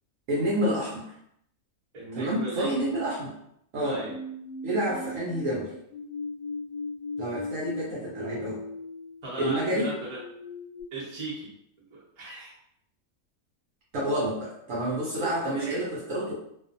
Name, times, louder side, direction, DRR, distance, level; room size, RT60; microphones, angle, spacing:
voice 1, 0.3-1.1 2.1-3.3 3.7-4.0 4.6-5.7 7.2-8.6 9.4-9.9 13.9-16.3, right 1 dB, 70° right, -5 dB, 0.9 m, -29 dB
voice 2, 1.9-2.9 3.8-4.1 9.2-10.2 10.9-11.5 11.8-12.5 15.2-15.9, right 2 dB, 35° right, -7 dB, 0.9 m, -37 dB
sound 1, 3.8-10.8, left 2 dB, 60° left, 0.8 m, -38 dB
2.4 x 2.3 x 2.5 m, 0.73 s
omnidirectional pair, 1.5 m